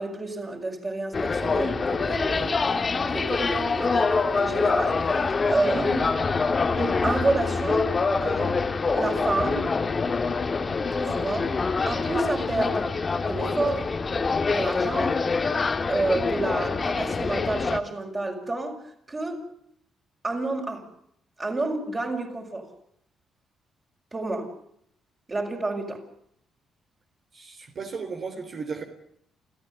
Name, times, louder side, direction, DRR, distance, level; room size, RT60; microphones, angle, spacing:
voice 1, 0.0-2.8 3.1-5.1 5.5-5.9 6.8-9.7 10.9-11.6 11.8-13.0 13.2-13.9 14.5-15.2 15.9-18.8 19.1-19.4 20.2-20.9 21.4-22.7 24.1-24.5 25.3-26.0, right 2 dB, 25° right, 6.2 m, -29 dB
sound 1, 1.1-17.8, left 4 dB, 35° left, 1.8 m, -25 dB
voice 2, 5.7-6.0 27.3-28.8, right 4 dB, 50° right, 3.6 m, -35 dB
29.5 x 14.0 x 8.0 m
cardioid pair, 90°, 0 cm